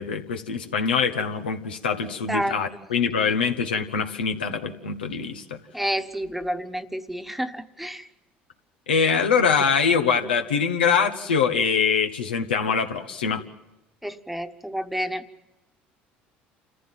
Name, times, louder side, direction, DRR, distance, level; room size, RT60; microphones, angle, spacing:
voice 1, 0.0-5.6 8.9-13.4, left 6 dB, 90° left, 5 dB, 1.3 m, -23 dB
voice 2, 5.7-8.1 14.0-15.3, equal, 5° right, 9 dB, 1.3 m, -29 dB
28.0 x 15.0 x 7.6 m, 0.97 s
hypercardioid pair, 65°, 5 cm